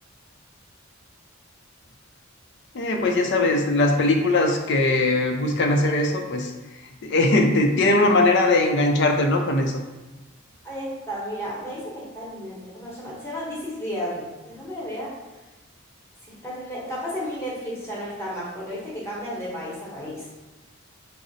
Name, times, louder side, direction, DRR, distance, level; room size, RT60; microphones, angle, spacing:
voice 1, 2.7-6.5 7.0-9.7, left 2 dB, 55° left, 3 dB, 0.4 m, -20 dB
voice 2, 10.6-15.1 16.3-20.3, equal, 10° left, -6 dB, 0.8 m, -33 dB
4.8 x 2.0 x 2.6 m, 1.1 s
head